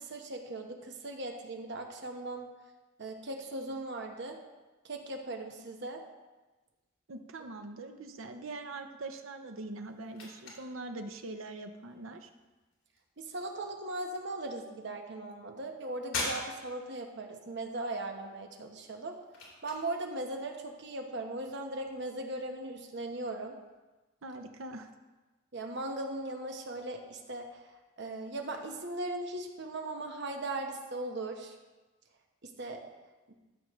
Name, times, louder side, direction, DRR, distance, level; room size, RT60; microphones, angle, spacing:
voice 1, 0.0-2.5 3.0-4.4 4.8-6.0 13.2-19.2 19.6-23.6 25.5-27.6 28.0-31.6 32.4-32.8, right 2 dB, 60° right, 3 dB, 1.1 m, -38 dB
voice 2, 7.1-12.3 24.2-24.9, right 2 dB, 80° right, 6 dB, 0.8 m, -42 dB
sound 1, 9.3-23.8, left 2 dB, 75° left, 2.6 m, -47 dB
13.5 x 6.4 x 3.2 m, 1.2 s
head